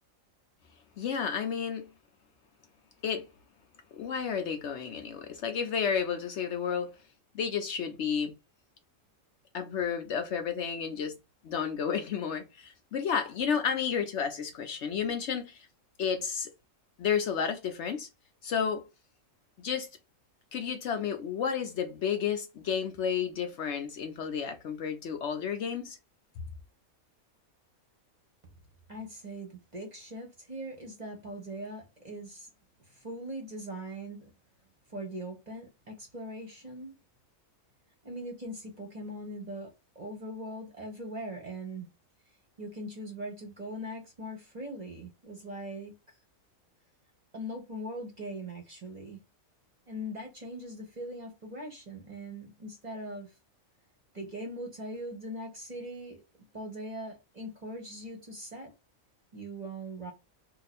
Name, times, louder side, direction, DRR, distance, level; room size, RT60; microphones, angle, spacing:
voice 1, 1.0-1.9 3.0-3.3 4.0-6.9 7.3-8.3 9.5-11.2 11.4-15.7 16.0-16.5 17.0-18.1 18.4-18.9 19.6-19.9 20.5-26.0, left 7 dB, 65° left, 0.8 m, -31 dB
voice 2, 28.9-32.5 32.8-34.3 34.9-36.9 38.0-41.9 42.6-45.9 47.3-49.2 49.9-53.3 54.1-56.2 56.5-58.7 59.3-60.1, right 1 dB, 35° right, 0.8 m, -41 dB
2.8 x 2.4 x 4.0 m
omnidirectional pair, 1.4 m